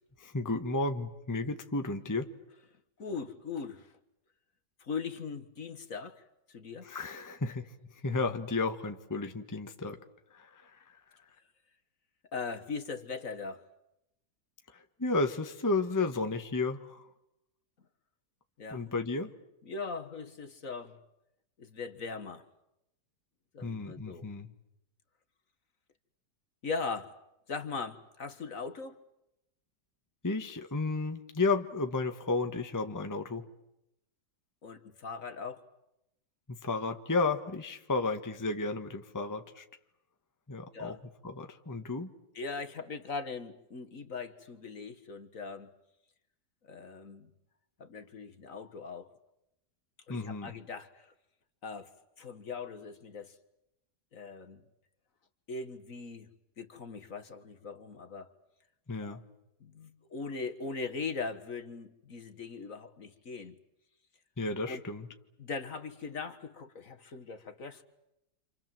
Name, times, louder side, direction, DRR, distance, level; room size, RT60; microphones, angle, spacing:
voice 1, 0.2-2.3 6.8-7.7 8.0-10.0 10.3-10.8 14.7-17.1 18.7-19.3 23.6-24.5 30.2-33.5 36.6-39.6 40.5-40.9 41.2-42.1 50.1-50.5 58.9-59.2 64.4-65.1, left 3 dB, 10° left, 1.2 m, -33 dB
voice 2, 3.0-3.9 4.8-6.2 6.5-6.9 12.3-13.7 18.6-19.0 19.7-21.0 21.6-22.5 23.5-24.3 26.6-27.2 27.5-29.0 34.6-35.6 40.7-41.0 42.4-45.7 46.6-47.3 47.8-49.1 50.1-51.1 51.6-53.4 54.1-54.6 55.5-56.3 56.6-58.3 59.0-59.2 59.6-63.6 64.7-64.8 65.4-67.8, left 4 dB, 50° left, 1.8 m, -40 dB
28.5 x 27.5 x 7.6 m
omnidirectional pair, 1.8 m